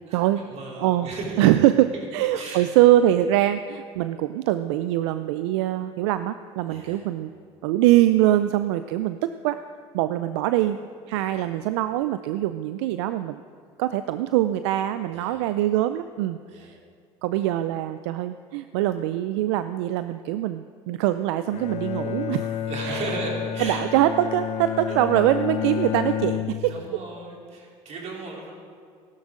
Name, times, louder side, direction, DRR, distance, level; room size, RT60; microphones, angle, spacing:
voice 1, 0.1-1.5 1.9-2.1 2.3-2.7 6.7-7.0 11.1-11.5 15.1-15.4 16.5-16.7 22.7-23.8 24.9-25.3 26.7-28.5, right 3 dB, 50° right, -2 dB, 3.5 m, -36 dB
voice 2, 0.8-1.1 1.4-7.3 7.6-9.6 9.9-10.8 11.1-13.4 13.8-16.8 17.2-22.6 22.9-23.1 23.6-26.7, right 13 dB, 80° right, 11 dB, 0.4 m, -23 dB
Bowed string instrument, 21.5-27.0, left 10 dB, 50° left, 0.6 m, -30 dB
16.0 x 12.5 x 3.7 m, 2.1 s
hypercardioid pair, 80°, 14 cm